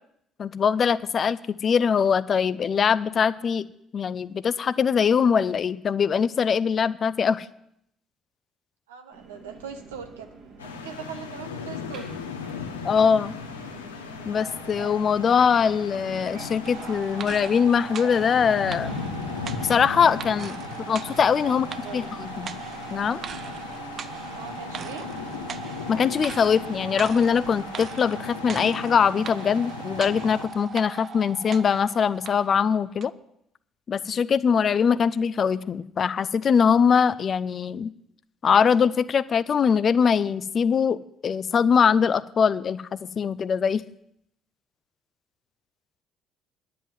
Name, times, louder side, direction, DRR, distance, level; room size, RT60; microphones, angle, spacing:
voice 1, 0.4-3.6 3.9-7.5 12.8-13.4 14.2-19.0 19.6-20.6 20.9-21.7 21.9-22.5 22.9-23.2 25.9-33.1 33.9-37.9 38.4-43.8, left 6 dB, 45° left, 16 dB, 0.6 m, -22 dB
voice 2, 8.9-10.3 10.6-12.1 21.4-21.6 21.8-22.1 24.3-25.1, right 6 dB, 80° right, 5 dB, 1.2 m, -40 dB
Subway metro underground, 9.1-27.9, right 4 dB, 65° right, 3.7 m, -46 dB
sound 1, 10.6-30.5, left 5 dB, 90° left, 1.0 m, -37 dB
sound 2, 16.6-32.5 33.0-33.1, right 7 dB, 50° right, 0.6 m, -39 dB
10.0 x 7.7 x 9.2 m, 0.75 s
hypercardioid pair, 50°, 0 cm